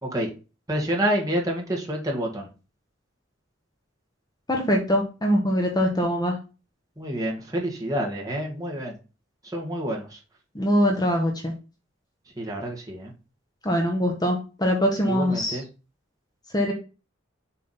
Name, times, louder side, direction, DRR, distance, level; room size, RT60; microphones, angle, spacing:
voice 1, 0.7-2.5 7.0-9.0 9.5-10.2 12.4-13.1 15.1-15.6, right 1 dB, 20° right, -1 dB, 2.1 m, -28 dB
voice 2, 4.5-6.3 10.5-11.5 13.6-15.6 16.5-16.7, equal, 20° left, 1 dB, 1.2 m, -23 dB
7.0 x 3.8 x 5.8 m, 0.32 s
head